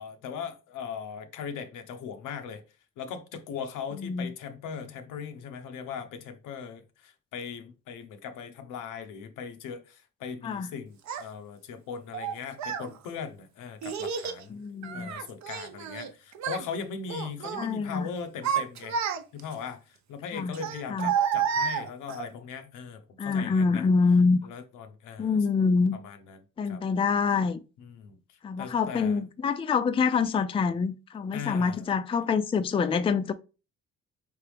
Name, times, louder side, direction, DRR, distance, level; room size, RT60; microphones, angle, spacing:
voice 1, 0.0-2.6 3.0-14.6 14.9-19.0 19.3-23.9 24.4-25.4 25.9-26.8 27.8-29.2 31.3-31.9, left 6 dB, 90° left, 0.8 m, -39 dB
voice 2, 4.0-4.3 10.4-10.7 14.5-15.1 17.6-18.1 20.3-20.5 20.9-21.1 23.2-24.4 25.2-26.0 26.6-27.6 28.4-33.3, left 5 dB, 20° left, 0.3 m, -26 dB
Child speech kid speaking, 11.1-11.2 12.1-12.9 13.8-14.4 14.8-16.1 16.4-16.7 17.1-17.7 18.2-19.5 20.5-22.3, right 8 dB, 65° right, 0.7 m, -30 dB
4.8 x 3.3 x 3.3 m
cardioid pair, 90°, 30 cm